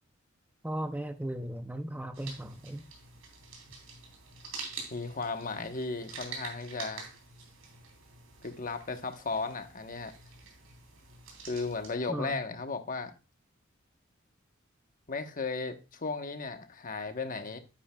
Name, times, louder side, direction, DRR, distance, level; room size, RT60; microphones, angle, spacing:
voice 1, 0.6-2.9 12.1-12.4, right 1 dB, 10° right, 0.5 m, -36 dB
sound 1, 2.1-11.9, right 4 dB, 85° right, 3.4 m, -47 dB
voice 2, 4.9-7.1 8.4-10.1 11.5-13.1 15.1-17.6, left 4 dB, 45° left, 1.0 m, -35 dB
9.9 x 8.7 x 2.3 m
head